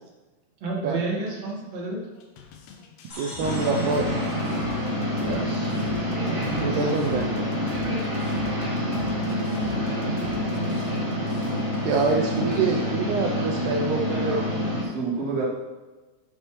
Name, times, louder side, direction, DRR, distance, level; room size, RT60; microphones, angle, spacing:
voice 1, 0.6-2.0 6.1-6.9, right 3 dB, 55° right, -3 dB, 2.1 m, -31 dB
sound 1, 2.2-12.6, left 5 dB, 75° left, 2.3 m, -44 dB
sound 2, 3.1-5.7, left 1 dB, 35° left, 3.2 m, -44 dB
voice 2, 3.2-4.2 6.6-7.6 8.4-8.5 11.8-14.5, right 4 dB, 90° right, 2 dB, 1.7 m, -26 dB
sound 3, 3.4-14.8, left 1 dB, 15° right, 1.0 m, -27 dB
voice 3, 6.2-7.3 9.6-10.3 12.1-12.9 14.9-15.4, right 4 dB, 40° right, -5 dB, 1.4 m, -33 dB
9.5 x 6.0 x 3.0 m, 1.2 s
omnidirectional pair, 4.3 m